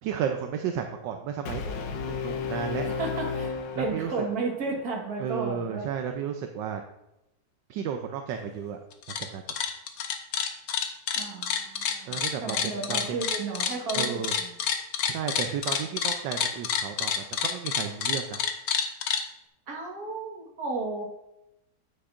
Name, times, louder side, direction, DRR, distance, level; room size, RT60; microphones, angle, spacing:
voice 1, 0.0-1.8 2.1-2.8 3.7-4.3 5.2-6.8 7.7-8.8 9.1-9.5 12.0-13.2 13.9-14.3 15.1-18.4, right 8 dB, 80° right, 5 dB, 1.3 m, -33 dB
Brass instrument, 1.5-4.5, left 5 dB, 80° left, 1.4 m, -33 dB
voice 2, 2.8-5.9 11.2-12.2 12.4-14.5 19.7-21.1, right 3 dB, 55° right, -1 dB, 2.0 m, -33 dB
sound 1, 8.9-9.2 9.5-19.2, left 7 dB, 60° left, 1.0 m, -28 dB
9.4 x 8.7 x 2.5 m, 0.89 s
omnidirectional pair, 2.0 m